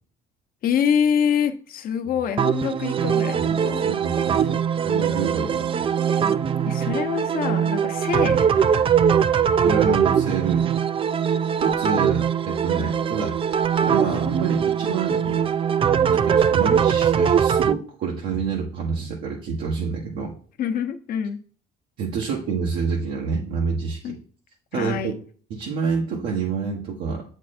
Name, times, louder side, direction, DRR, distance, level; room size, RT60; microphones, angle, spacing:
voice 1, 0.6-3.8 6.6-8.8 20.6-21.4 24.0-24.2 24.7-25.2, left 8 dB, 60° left, 0.9 m, -25 dB
sound 1, 2.4-17.7, right 8 dB, 30° right, 0.4 m, -21 dB
voice 2, 3.3-5.9 9.6-10.6 11.2-13.4 13.8-15.5 16.1-20.3 22.0-24.2 24.7-25.1 25.5-27.2, right 5 dB, 85° right, 1.5 m, -28 dB
7.6 x 4.5 x 4.3 m
cardioid pair, 110°, 17 cm